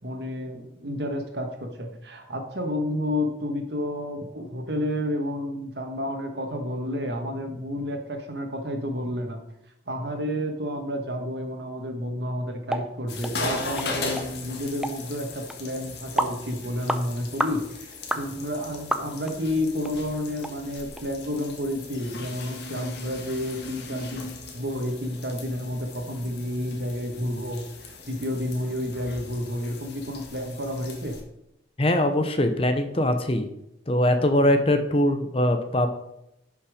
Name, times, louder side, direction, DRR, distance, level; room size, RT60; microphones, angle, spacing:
voice 1, 0.0-9.4 9.9-31.2, left 1 dB, 60° right, 4 dB, 1.6 m, -30 dB
sound 1, 12.7-12.9 13.2-13.3 13.8-13.9 14.2-14.3 14.8-15.0 15.5-15.6 16.2-16.4 16.9-17.0 17.4-17.6 18.1-18.3 18.9-19.3 19.8-19.9 20.4-20.5 21.0-21.1, right 1 dB, 5° right, 0.6 m, -28 dB
sound 2, 13.1-31.2, left 3 dB, 55° left, 1.7 m, -38 dB
voice 2, 31.8-33.5 33.9-35.9, left 1 dB, 30° left, 8 dB, 0.8 m, -22 dB
11.5 x 5.8 x 5.0 m, 0.84 s
head